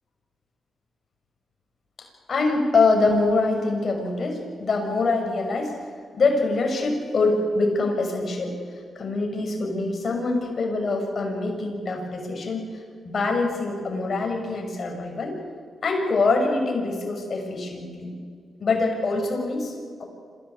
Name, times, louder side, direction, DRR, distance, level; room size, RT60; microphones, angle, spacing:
voice 1, 2.0-5.8 6.1-8.5 8.9-15.4 15.8-18.1 18.6-20.0, left 3 dB, 55° left, 2 dB, 6.2 m, -24 dB
26.0 x 16.5 x 8.7 m, 2.1 s
cardioid pair, 65°, 0 cm